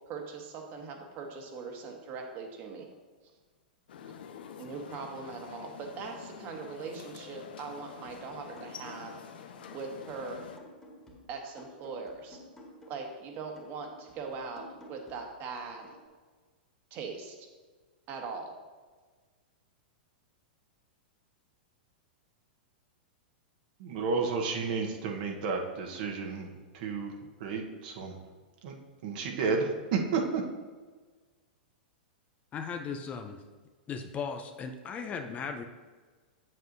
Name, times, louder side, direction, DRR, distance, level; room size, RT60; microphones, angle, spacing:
voice 1, 0.1-2.9 4.1-4.2 4.6-9.1 9.7-10.5 11.3-12.4 12.9-16.0 16.9-17.4 18.1-18.5, right 4 dB, 40° right, 2 dB, 1.3 m, -41 dB
sound 1, 3.9-10.6, left 7 dB, 75° left, 0.6 m, -47 dB
sound 2, 8.1-9.2 9.6-13.1 13.6-16.1, equal, 10° left, 1.8 m, -54 dB
voice 2, 23.8-26.5 26.7-27.1 27.4-28.2 28.6-28.7 29.0-30.4, right 4 dB, 60° right, 2 dB, 1.1 m, -31 dB
voice 3, 32.5-33.4 33.9-35.6, left 5 dB, 25° left, 6 dB, 0.5 m, -37 dB
7.6 x 7.5 x 2.7 m, 1.4 s
hypercardioid pair, 120°, 5 cm